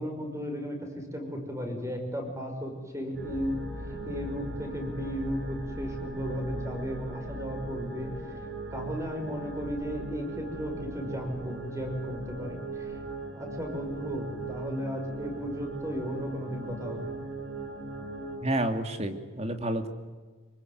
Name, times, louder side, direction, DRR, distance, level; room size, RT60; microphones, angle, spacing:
voice 1, 0.0-8.1 8.7-12.9 13.3-17.1, equal, 15° right, 4 dB, 5.8 m, -35 dB
sound 1, 3.1-18.4, right 2 dB, 60° right, 6.5 m, -39 dB
voice 2, 18.4-19.9, right 1 dB, 30° right, 7 dB, 2.5 m, -29 dB
26.0 x 23.5 x 9.5 m, 1.3 s
head